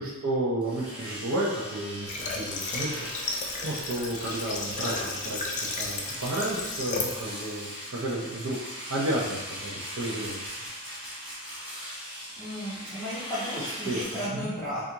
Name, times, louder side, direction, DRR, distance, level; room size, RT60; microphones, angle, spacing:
voice 1, 0.0-3.1 3.6-8.6 8.9-10.5 13.8-14.0 14.3-14.5, right 1 dB, 65° right, -5 dB, 0.6 m, -32 dB
Domestic sounds home sounds, 0.6-14.3, equal, 20° right, 1.0 m, -39 dB
Water / Water tap faucet, 2.1-7.2, left 3 dB, 35° left, 0.4 m, -34 dB
voice 2, 12.4-14.9, equal, 5° left, -13 dB, 0.8 m, -34 dB
3.4 x 2.4 x 2.8 m, 1.1 s
head